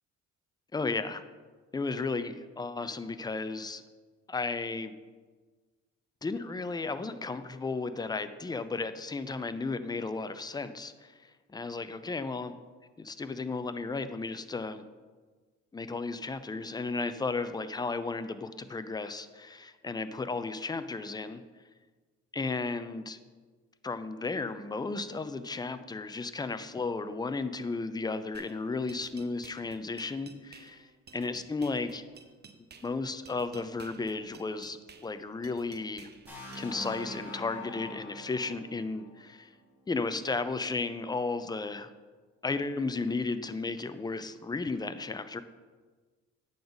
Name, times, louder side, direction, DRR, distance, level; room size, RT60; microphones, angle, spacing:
voice 1, 0.7-1.2 1.7-3.8 4.3-4.9 6.2-12.5 13.0-14.8 15.7-21.4 22.3-23.2 23.8-30.8 31.1-32.0 32.8-34.8 35.0-36.1 36.5-39.5 39.9-41.9 42.4-45.4, left 3 dB, 15° left, 11 dB, 0.5 m, -34 dB
sound 1, 28.3-36.9, right 5 dB, 35° right, 0.7 m, -54 dB
sound 2, 36.3-40.1, left 1 dB, 5° right, 2.4 m, -44 dB
9.1 x 4.0 x 7.0 m, 1.4 s
cardioid pair, 90°, 30 cm